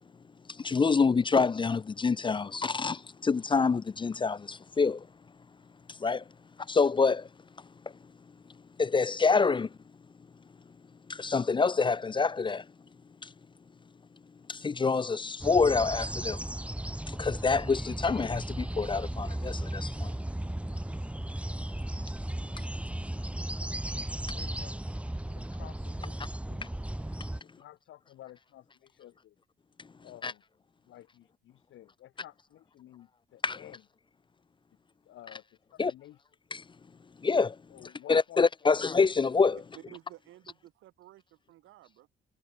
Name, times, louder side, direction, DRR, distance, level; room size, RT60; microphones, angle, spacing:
voice 1, 0.5-5.1 5.9-6.2 6.7-7.3 8.8-9.7 11.1-12.7 13.2-13.3 14.5-16.4 17.1-20.1 30.2-30.3 33.4-33.6 35.8-35.9 36.5-36.6 37.2-37.6 38.1-39.6, left 4 dB, 25° left, 0.5 m, -26 dB
sound 1, 15.4-27.4, right 1 dB, 5° right, 1.7 m, -35 dB
voice 2, 23.7-25.0 25.3-26.7 27.6-29.4 30.0-30.4 30.9-33.8 35.1-35.4 35.7-36.2 37.7-38.8, left 13 dB, 80° left, 5.1 m, -52 dB
voice 3, 39.7-42.1, right 15 dB, 90° right, 6.1 m, -53 dB
cardioid pair, 90°, 20 cm